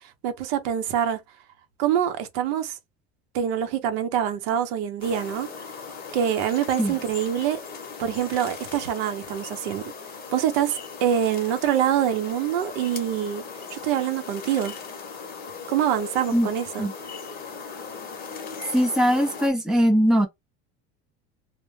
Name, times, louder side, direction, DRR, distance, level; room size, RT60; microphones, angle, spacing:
voice 1, 0.2-1.2 1.8-2.7 3.3-5.5 6.1-7.6 8.0-9.9 10.3-13.4 13.7-14.8 15.7-16.9, right 10 dB, 85° right, 0.7 m, -25 dB
sound 1, 5.0-19.5, left 5 dB, 30° left, 0.8 m, -38 dB
voice 2, 18.7-20.3, equal, ahead, 0.5 m, -20 dB
2.1 x 2.1 x 3.1 m
cardioid pair, 145°, 29 cm